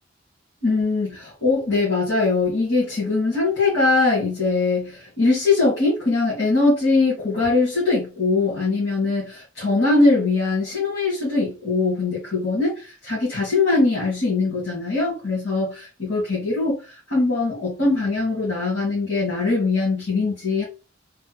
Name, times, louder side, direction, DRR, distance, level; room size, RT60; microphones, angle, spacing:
voice 1, 0.6-16.7 17.1-20.6, left 3 dB, 85° left, -6 dB, 1.5 m, -21 dB
3.3 x 2.1 x 2.9 m, 0.32 s
head